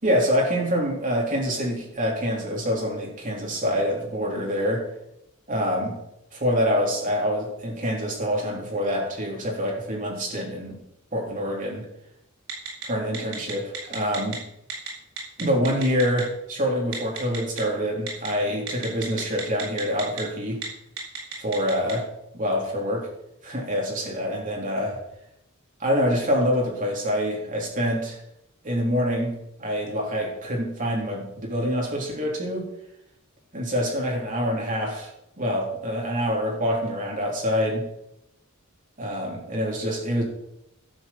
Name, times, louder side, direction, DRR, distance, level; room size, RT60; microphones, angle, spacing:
voice 1, 0.0-4.9 5.5-6.0 6.3-10.8 11.1-11.9 12.9-14.4 15.4-20.6 21.4-22.1 22.3-23.1 23.4-25.0 25.8-28.2 28.6-32.7 33.5-35.1 35.4-37.9 39.0-40.2, equal, 40° right, -1 dB, 3.8 m, -26 dB
Telephone, 12.5-12.8 13.1-14.4 14.7-14.9 15.2-16.2 16.9-17.6 18.1-18.3 18.7-20.2 20.5-20.6 21.0-21.9, right 6 dB, 80° right, 4.6 m, -33 dB
12.0 x 7.4 x 7.3 m, 0.82 s
head